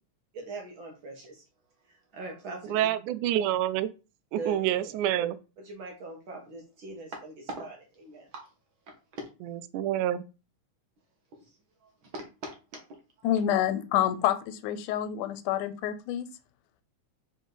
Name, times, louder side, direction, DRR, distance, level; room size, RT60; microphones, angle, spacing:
voice 1, 0.3-1.4 1.9-2.9 4.3-4.6 5.6-8.4 8.9-9.2 11.8-12.8 13.2-13.3, right 2 dB, 55° right, 1.5 m, -41 dB
voice 2, 2.7-3.9 4.3-5.4 9.7-10.2, right 12 dB, 85° right, 2.0 m, -27 dB
voice 3, 13.2-16.3, left 11 dB, 85° left, 2.2 m, -28 dB
5.1 x 5.0 x 3.9 m
omnidirectional pair, 3.5 m